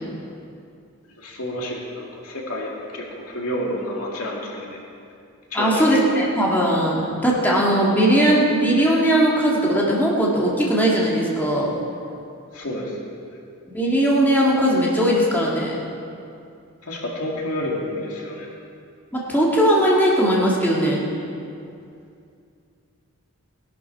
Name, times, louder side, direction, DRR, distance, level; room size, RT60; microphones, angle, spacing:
voice 1, 1.2-4.8 5.5-6.1 12.5-13.0 16.8-18.5, left 1 dB, 85° left, -2 dB, 2.4 m, -29 dB
voice 2, 5.5-11.7 13.7-15.7 19.1-21.0, right 1 dB, 10° left, -5 dB, 1.9 m, -19 dB
18.0 x 11.5 x 4.6 m, 2.5 s
head